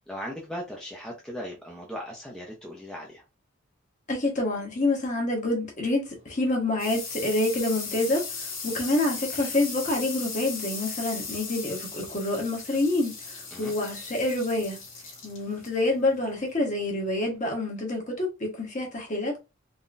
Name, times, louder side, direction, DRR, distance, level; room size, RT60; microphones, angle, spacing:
voice 1, 0.1-3.2 13.5-13.7, equal, 5° left, 0.6 m, -38 dB
voice 2, 4.1-14.8 15.2-19.4, left 2 dB, 35° left, 1.2 m, -27 dB
sound 1, 6.1-17.4, left 4 dB, 80° left, 1.6 m, -38 dB
3.8 x 2.8 x 2.5 m
head